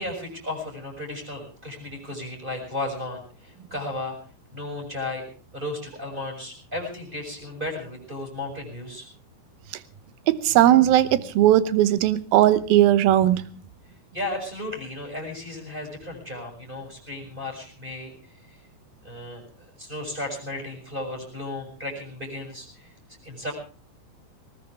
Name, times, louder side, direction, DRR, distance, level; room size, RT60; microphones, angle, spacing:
voice 1, 0.0-4.2 4.5-5.2 5.5-9.1 14.1-18.1 19.0-22.9 23.2-23.5, left 2 dB, 10° right, 0 dB, 6.2 m, -34 dB
voice 2, 10.3-13.5, right 13 dB, 75° right, 15 dB, 2.6 m, -18 dB
20.0 x 19.0 x 3.5 m, 0.40 s
omnidirectional pair, 4.8 m